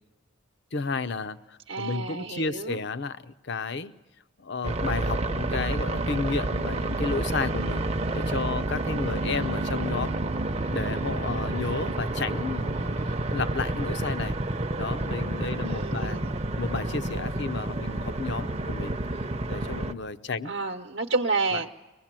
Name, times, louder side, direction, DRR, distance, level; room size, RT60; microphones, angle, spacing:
voice 1, 0.7-3.9 4.4-7.8 8.1-10.2 10.7-14.4 14.8-16.3 16.6-18.9 19.5-20.6 21.5-21.6, left 4 dB, 55° left, 13 dB, 0.7 m, -32 dB
voice 2, 1.7-2.8 15.6-16.3 20.4-21.7, right 3 dB, 65° right, 2 dB, 0.9 m, -30 dB
sound 1, 4.6-19.9, right 2 dB, 30° right, 0.7 m, -29 dB
24.5 x 19.0 x 7.5 m, 1.1 s
head